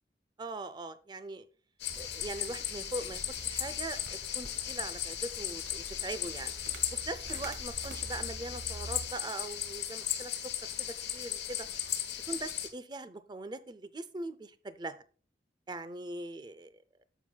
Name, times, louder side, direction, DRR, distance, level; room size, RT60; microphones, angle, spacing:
voice 1, 0.4-1.5 2.0-6.5 6.9-11.7 12.3-14.9 15.7-16.7, right 2 dB, 25° right, 13 dB, 0.5 m, -41 dB
sound 1, 1.8-12.7, left 10 dB, 75° left, 1.0 m, -37 dB
sound 2, 1.9-9.1, right 1 dB, 70° right, 1.5 m, -47 dB
11.0 x 7.2 x 2.3 m, 0.40 s
head